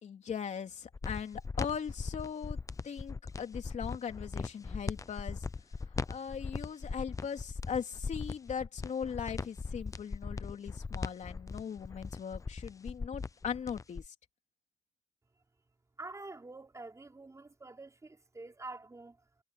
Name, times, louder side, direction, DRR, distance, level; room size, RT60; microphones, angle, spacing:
voice 1, 0.0-2.6 2.8-5.5 6.1-14.1, left 7 dB, 65° left, 3.5 m, -39 dB
sound 1, 0.9-14.1, left 4 dB, 25° left, 0.6 m, -39 dB
voice 2, 16.0-19.2, right 3 dB, 25° right, 5.1 m, -47 dB
cardioid pair, 90°, 13 cm